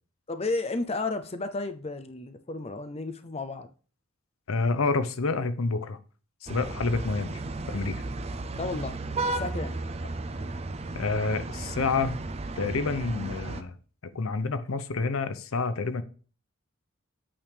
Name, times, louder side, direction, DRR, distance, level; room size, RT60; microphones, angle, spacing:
voice 1, 0.3-3.7 8.6-9.0 9.4-9.8, left 3 dB, 30° left, 0.6 m, -32 dB
voice 2, 4.5-6.0 6.4-7.4 7.7-8.0 10.9-12.2 12.6-13.7 14.1-16.0, left 4 dB, 85° left, 0.7 m, -28 dB
sound 1, 6.5-13.6, right 2 dB, 30° right, 0.6 m, -34 dB
8.7 x 3.6 x 6.5 m
head